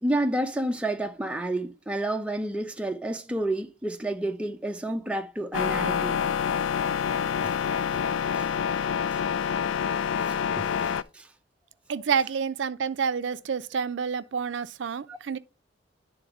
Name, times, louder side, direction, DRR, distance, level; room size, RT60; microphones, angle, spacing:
voice 1, 0.0-6.2 7.4-7.6 7.9-8.0 8.3-8.5 9.1-9.2 10.3-11.3 15.1-15.2, right 1 dB, 5° right, 0.5 m, -30 dB
sound 1, 5.5-11.0, left 7 dB, 80° left, 0.3 m, -27 dB
voice 2, 11.9-15.4, right 6 dB, 70° right, 0.4 m, -28 dB
10.5 x 3.9 x 3.5 m
head